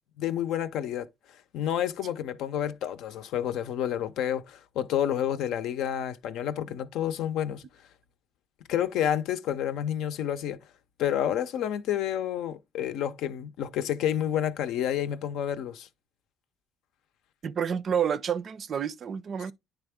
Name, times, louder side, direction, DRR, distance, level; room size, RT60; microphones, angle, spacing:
voice 1, 0.2-1.1 1.5-7.6 8.7-10.6 11.0-15.9, left 10 dB, 80° left, 0.6 m, -29 dB
voice 2, 17.4-19.5, right 8 dB, 45° right, 0.4 m, -29 dB
10.0 x 3.4 x 3.5 m
cardioid pair, 120°, 0 cm